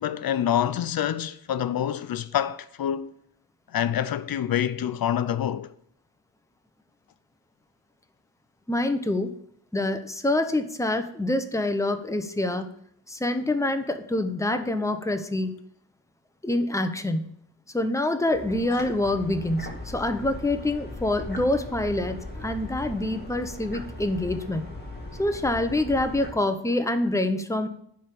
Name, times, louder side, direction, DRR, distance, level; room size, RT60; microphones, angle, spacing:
voice 1, 0.0-3.1 3.7-5.7, left 10 dB, 80° left, 0.6 m, -26 dB
voice 2, 8.7-9.3 9.7-12.7 13.1-15.6 16.4-17.3 17.7-24.6 25.2-27.7, left 1 dB, 10° left, 0.9 m, -26 dB
sound 1, 18.3-26.3, left 1 dB, 30° left, 2.4 m, -39 dB
10.0 x 3.7 x 6.9 m
wide cardioid pair, 100°, 35 cm